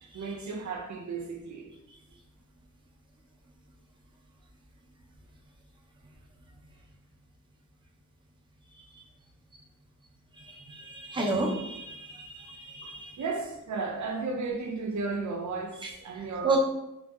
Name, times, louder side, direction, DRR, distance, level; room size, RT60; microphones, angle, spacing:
voice 1, 0.0-1.7 12.8-16.6, right 4 dB, 70° right, 0.5 m, -34 dB
voice 2, 10.4-13.2 15.8-15.9 16.4-16.6, right 3 dB, 15° right, 0.5 m, -31 dB
3.8 x 2.6 x 2.3 m
wide cardioid pair, 145°, 30 cm